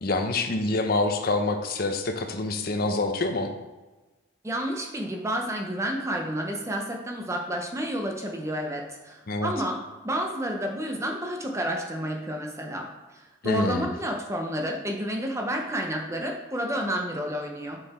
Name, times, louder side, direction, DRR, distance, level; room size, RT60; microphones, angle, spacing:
voice 1, 0.0-3.5 9.3-9.5 13.4-13.9, left 2 dB, 50° left, 6 dB, 0.6 m, -26 dB
voice 2, 4.4-9.8 10.0-12.9 13.1-17.8, equal, 15° right, 2 dB, 0.6 m, -30 dB
6.6 x 3.9 x 4.2 m, 1.2 s
head